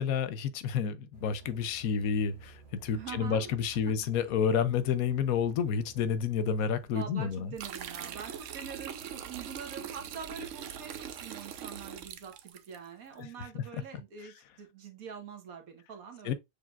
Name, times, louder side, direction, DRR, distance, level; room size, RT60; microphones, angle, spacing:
voice 1, 0.0-7.5 13.2-13.3 16.2-16.3, left 7 dB, 85° left, 1.1 m, -30 dB
sound 1, 1.1-7.8, right 4 dB, 40° right, 1.3 m, -56 dB
voice 2, 2.9-3.5 6.9-16.3, right 7 dB, 90° right, 1.5 m, -44 dB
sound 2, 7.6-12.8, right 8 dB, 70° right, 0.9 m, -42 dB
6.7 x 3.3 x 2.4 m
omnidirectional pair, 1.5 m